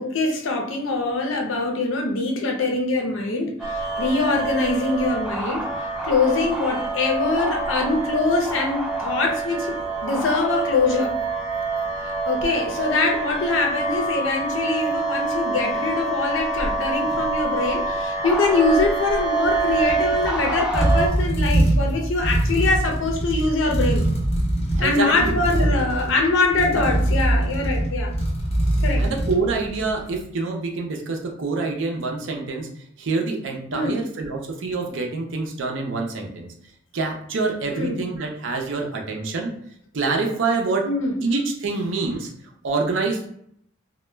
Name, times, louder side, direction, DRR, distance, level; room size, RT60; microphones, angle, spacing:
voice 1, 0.0-5.7 6.0-11.1 12.2-24.1 24.8-28.1 28.8-29.0 33.7-34.0 37.7-38.0 40.8-41.1, left 3 dB, 80° left, 1 dB, 0.6 m, -23 dB
sound 1, 3.6-21.1, right 3 dB, 5° right, 0.4 m, -26 dB
sound 2, 19.4-30.0, right 1 dB, 30° left, 0.7 m, -23 dB
voice 2, 24.8-25.8 26.8-26.9 29.0-32.7 33.0-36.5 36.9-39.5 39.9-40.8 41.2-42.3 42.6-43.3, right 3 dB, 75° right, 2 dB, 0.5 m, -26 dB
2.1 x 2.1 x 3.2 m, 0.69 s
head